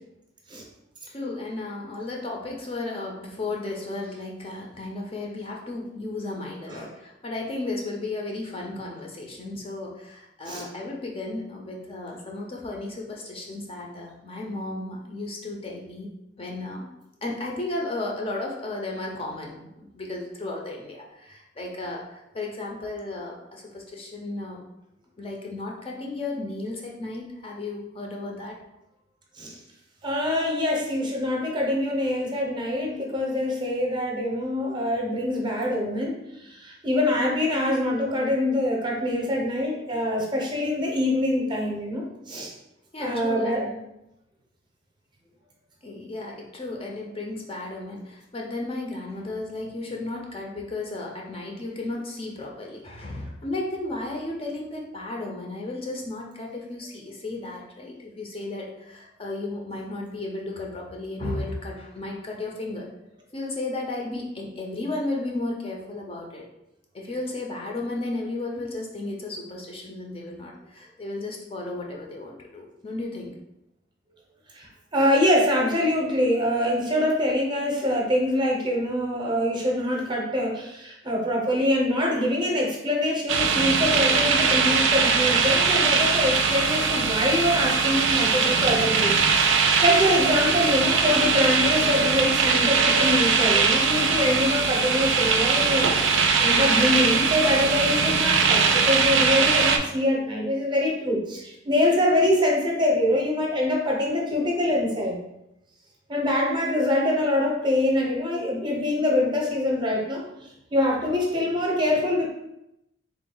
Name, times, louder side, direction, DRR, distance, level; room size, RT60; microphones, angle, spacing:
voice 1, 1.1-16.1 16.4-16.9 17.2-24.6 25.2-28.6 42.9-43.8 45.8-62.9 63.3-66.5 66.9-73.3, left 2 dB, 30° left, -1 dB, 0.5 m, -34 dB
voice 2, 30.0-42.5 43.0-43.7 74.5-105.2 106.1-110.2 110.7-112.3, left 1 dB, 25° right, -1 dB, 0.7 m, -24 dB
sound 1, 83.3-99.8, right 5 dB, 80° right, 0.4 m, -21 dB
3.5 x 2.2 x 3.8 m, 0.87 s
head